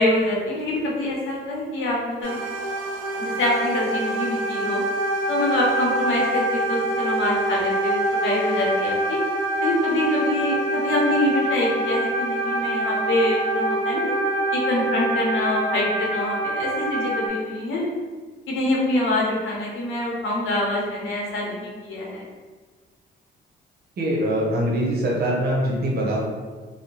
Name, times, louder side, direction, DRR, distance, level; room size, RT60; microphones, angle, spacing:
voice 1, 0.0-2.4 3.2-4.8 5.3-9.2 9.6-14.2 14.5-17.9 18.5-22.2, left 1 dB, 80° left, -3 dB, 0.8 m, -25 dB
sound 1, 2.2-17.3, right 1 dB, 85° right, 0.5 m, -25 dB
voice 2, 24.0-26.2, right 1 dB, 55° right, -3 dB, 0.8 m, -23 dB
2.6 x 2.1 x 2.9 m, 1.4 s
cardioid pair, 90°, 20 cm